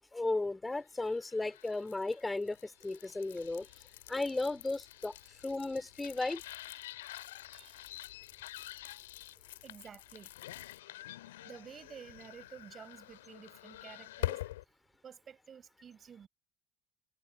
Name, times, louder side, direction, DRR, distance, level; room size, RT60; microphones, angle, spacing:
voice 1, 0.1-3.7 4.1-5.1 5.4-6.4, left 2 dB, 15° left, 3.0 m, -35 dB
sound 1, 1.0-14.6, left 15 dB, 75° left, 2.4 m, -46 dB
voice 2, 7.5-8.0 9.6-10.3 11.4-14.4 15.0-16.3, right 7 dB, 35° right, 6.7 m, -52 dB
figure-of-eight pair, 65°, 0 cm